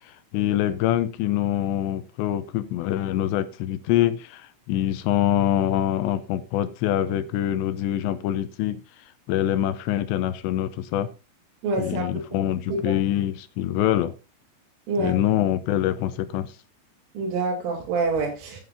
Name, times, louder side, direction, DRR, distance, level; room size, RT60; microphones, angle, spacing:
voice 1, 0.3-8.8 9.3-11.1 11.8-14.1 15.0-16.5, left 12 dB, 80° left, 12 dB, 2.8 m, -25 dB
voice 2, 11.6-12.4 12.7-13.0 14.9-15.1 17.1-18.6, right 3 dB, 85° right, -3 dB, 5.1 m, -27 dB
15.0 x 9.7 x 2.6 m, 0.29 s
omnidirectional pair, 5.5 m